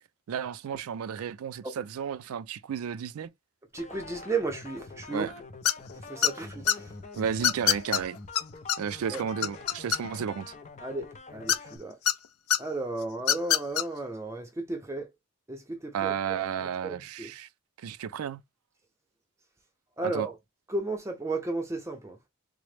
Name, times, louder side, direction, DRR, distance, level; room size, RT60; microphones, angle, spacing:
voice 1, 0.3-3.3 5.1-5.3 7.2-8.2 8.8-10.5 15.9-17.5 17.8-18.4 20.0-20.3, right 7 dB, 90° right, 0.4 m, -33 dB
voice 2, 3.7-5.3 5.9-6.9 9.1-9.2 10.8-12.0 12.6-15.1 15.5-16.4 16.8-17.3 20.0-20.3 20.7-22.2, right 3 dB, 15° right, 0.5 m, -34 dB
sound 1, 3.8-11.8, left 3 dB, 35° left, 0.5 m, -45 dB
sound 2, 5.7-5.9 6.2-6.8 7.4-8.0 8.4-8.5 8.7-8.8 9.1-10.3 11.5-12.1 12.5-12.6 13.2-13.8, left 9 dB, 90° left, 0.4 m, -24 dB
3.7 x 2.0 x 3.2 m
head